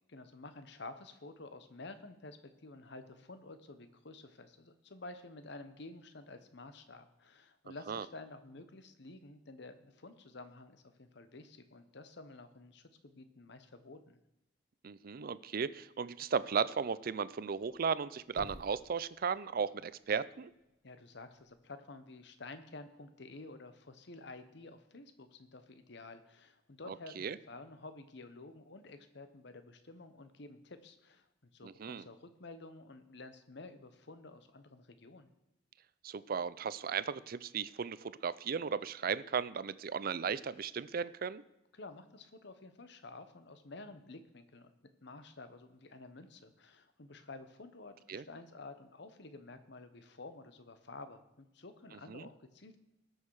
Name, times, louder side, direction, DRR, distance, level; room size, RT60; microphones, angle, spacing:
voice 1, 0.1-14.2 20.8-31.3 31.5-35.3 41.7-44.7 45.0-52.8, left 3 dB, 65° left, 10 dB, 1.0 m, -51 dB
voice 2, 14.8-20.5 26.9-27.4 31.6-32.0 36.0-41.4 48.1-48.2 52.1-52.3, right 6 dB, 50° right, 17 dB, 0.4 m, -36 dB
Thump thud, 17.4-21.5, equal, 20° left, 1.5 m, -57 dB
19.5 x 6.5 x 4.8 m, 0.91 s
head